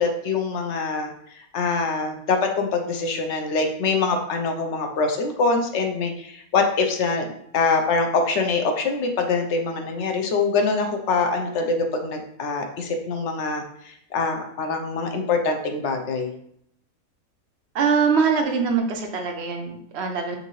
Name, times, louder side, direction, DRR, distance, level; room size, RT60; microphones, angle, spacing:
voice 1, 0.0-7.3 7.5-16.3, left 4 dB, 65° left, 4 dB, 0.8 m, -24 dB
voice 2, 17.7-20.4, right 5 dB, 65° right, 4 dB, 0.7 m, -23 dB
5.3 x 2.6 x 3.0 m, 0.70 s
omnidirectional pair, 1.6 m